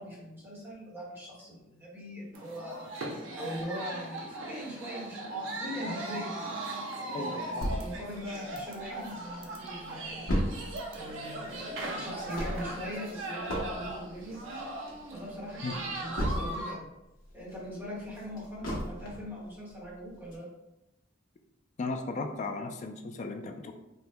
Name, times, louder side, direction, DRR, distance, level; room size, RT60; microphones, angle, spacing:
voice 1, 0.0-2.9 3.4-6.3 7.0-9.1 9.4-10.4 10.9-14.4 15.1-16.8 17.3-20.5, equal, 10° right, -6 dB, 1.0 m, -41 dB
sound 1, 2.3-16.7, right 2 dB, 65° right, 0.5 m, -39 dB
voice 2, 7.1-7.8 15.6-15.7 21.8-23.7, left 3 dB, 35° left, 5 dB, 0.3 m, -36 dB
sound 2, 7.6-9.1 9.5-9.6 9.8-16.8 17.2-19.4 19.8-19.9 20.3-20.4, equal, 75° left, 0.8 m, -35 dB
3.3 x 2.1 x 2.8 m, 0.92 s
head